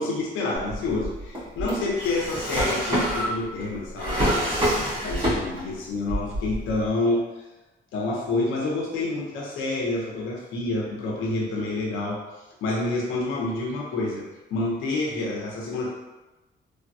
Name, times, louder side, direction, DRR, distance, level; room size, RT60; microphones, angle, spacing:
voice 1, 0.0-7.5 7.9-12.2 12.6-14.2 14.5-15.9, left 2 dB, 90° left, -3 dB, 0.7 m, -28 dB
Drawer open or close, 0.5-5.7 6.0-6.9, equal, 25° right, 1.5 m, -27 dB
3.3 x 2.2 x 2.6 m, 1.1 s
cardioid pair, 90°, 20 cm